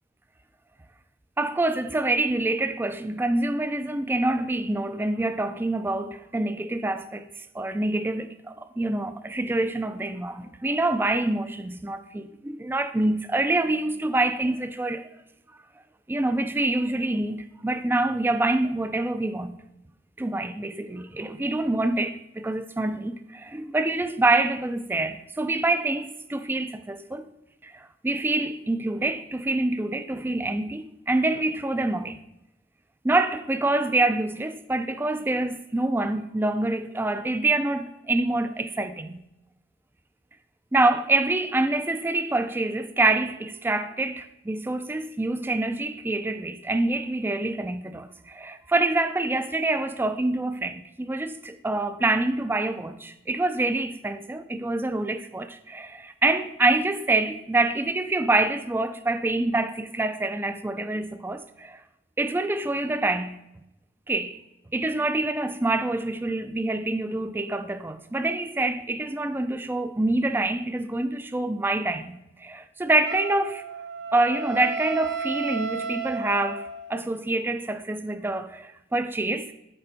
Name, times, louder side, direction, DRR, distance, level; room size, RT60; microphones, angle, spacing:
voice 1, 1.4-7.3 7.5-15.1 16.1-19.6 20.2-27.2 27.6-32.2 33.0-39.2 40.7-61.8 62.2-63.4 64.1-64.4 64.7-73.6 74.1-79.5, right 2 dB, 10° right, 0.3 m, -26 dB
Wind instrument woodwind instrument, 73.1-77.0, right 5 dB, 70° right, 0.5 m, -33 dB
6.7 x 4.4 x 4.0 m
head